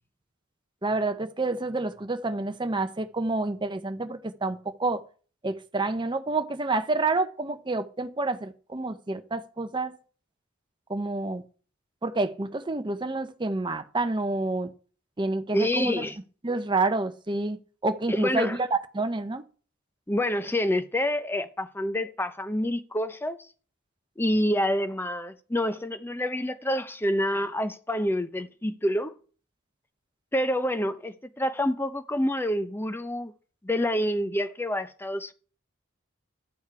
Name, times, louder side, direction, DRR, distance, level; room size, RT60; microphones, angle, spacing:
voice 1, 0.8-5.0 5.4-10.0 10.9-11.4 12.0-14.7 15.2-16.1 16.4-19.4, right 3 dB, 20° right, 0.7 m, -28 dB
voice 2, 15.5-16.2 18.1-18.6 20.1-23.4 24.2-29.1 30.3-33.3 33.6-35.3, left 1 dB, 10° left, 0.6 m, -27 dB
12.5 x 7.1 x 4.7 m
head